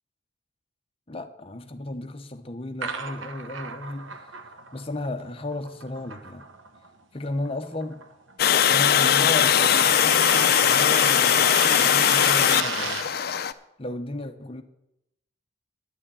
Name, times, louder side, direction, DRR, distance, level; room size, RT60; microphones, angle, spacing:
voice 1, 1.1-4.3 4.7-6.4 7.1-8.0 8.7-13.0 13.8-14.6, left 2 dB, 30° left, 0.8 m, -34 dB
sound 1, 2.8-6.9 7.2-13.2, right 5 dB, 85° right, 1.0 m, -35 dB
Water, 8.4-13.5, left 9 dB, 50° left, 0.4 m, -20 dB
10.0 x 6.3 x 8.8 m
head